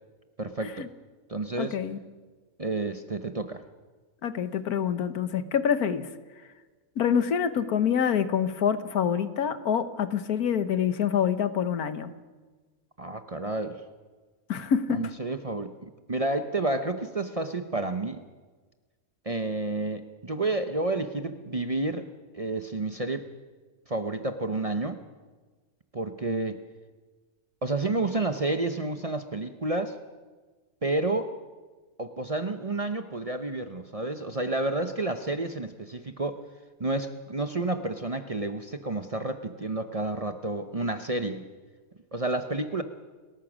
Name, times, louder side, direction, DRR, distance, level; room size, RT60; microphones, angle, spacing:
voice 1, 0.4-0.9 1.3-1.8 2.6-3.6 13.0-13.8 14.9-15.7 16.1-18.2 19.3-22.1 22.3-23.3 23.9-25.0 25.9-26.6 27.6-30.0 30.8-31.3 32.0-36.4 36.8-41.5 42.1-42.8, right 2 dB, 30° right, 8 dB, 0.7 m, -30 dB
voice 2, 1.6-2.0 4.2-6.0 7.0-12.1 14.5-15.0, left 8 dB, 90° left, 11 dB, 1.6 m, -26 dB
30.0 x 14.0 x 6.2 m, 1.3 s
omnidirectional pair, 1.5 m